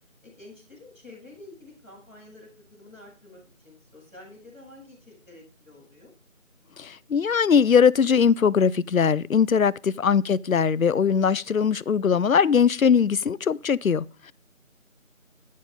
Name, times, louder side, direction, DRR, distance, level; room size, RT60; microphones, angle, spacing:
voice 1, 0.2-6.1 9.8-10.2, left 2 dB, ahead, 3.8 m, -49 dB
voice 2, 6.8-14.3, left 6 dB, 75° left, 0.6 m, -21 dB
13.0 x 7.5 x 3.7 m
figure-of-eight pair, 175°, 41 cm